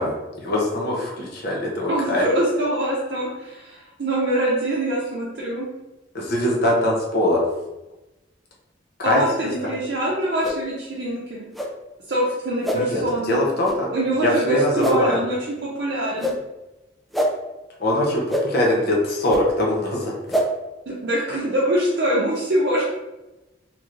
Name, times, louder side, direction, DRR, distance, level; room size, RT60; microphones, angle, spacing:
voice 1, 0.0-2.3 6.1-7.4 9.0-9.7 12.7-15.2 17.8-20.2, left 1 dB, 55° left, -2 dB, 0.7 m, -22 dB
voice 2, 1.9-5.7 9.0-11.4 12.1-13.4 13.9-15.4 15.6-16.3 20.9-22.8, right 1 dB, 65° right, -5 dB, 0.6 m, -24 dB
sound 1, 10.4-10.6 11.5-11.7 12.6-12.8 13.6-13.8 14.8-15.0 16.2-16.4 17.1-17.3 18.3-18.4 19.3-19.4 20.3-20.5, equal, ahead, 0.3 m, -23 dB
3.1 x 2.9 x 2.5 m, 1.0 s
head